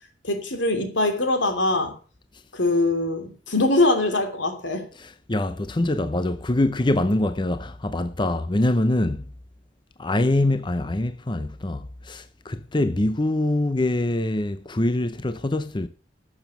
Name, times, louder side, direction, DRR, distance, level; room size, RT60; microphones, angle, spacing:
voice 1, 0.2-1.9 2.5-4.9, left 2 dB, 90° left, 3.0 m, -22 dB
voice 2, 5.0-9.3 10.0-15.9, left 1 dB, 25° left, 0.6 m, -24 dB
12.0 x 7.2 x 7.0 m
head